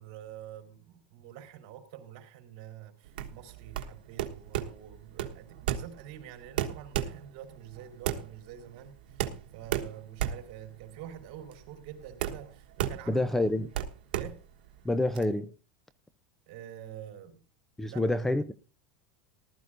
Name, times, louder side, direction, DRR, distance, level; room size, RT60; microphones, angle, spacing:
voice 1, 0.0-13.5 14.1-14.4 16.5-17.4 17.8-18.1, right 10 dB, 55° right, 4.2 m, -47 dB
sound 1, 3.1-15.2, right 11 dB, 80° right, 1.3 m, -35 dB
voice 2, 13.1-13.7 14.8-15.5 17.8-18.5, left 1 dB, 5° left, 0.6 m, -27 dB
19.0 x 13.0 x 2.6 m
supercardioid pair, 140°, 5 cm